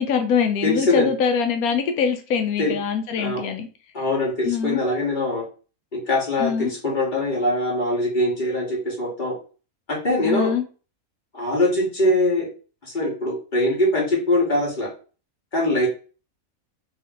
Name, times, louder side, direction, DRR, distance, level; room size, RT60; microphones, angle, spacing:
voice 1, 0.0-3.7 4.4-4.8 6.4-6.7 10.2-10.7, left 6 dB, 90° left, 7 dB, 1.1 m, -23 dB
voice 2, 0.6-1.1 2.6-2.7 3.2-3.4 3.9-5.4 5.9-9.3 9.9-10.5 11.3-12.5 12.8-14.9 15.5-15.9, left 1 dB, 35° left, -4 dB, 1.8 m, -22 dB
3.4 x 3.0 x 3.7 m, 0.36 s
omnidirectional pair, 1.5 m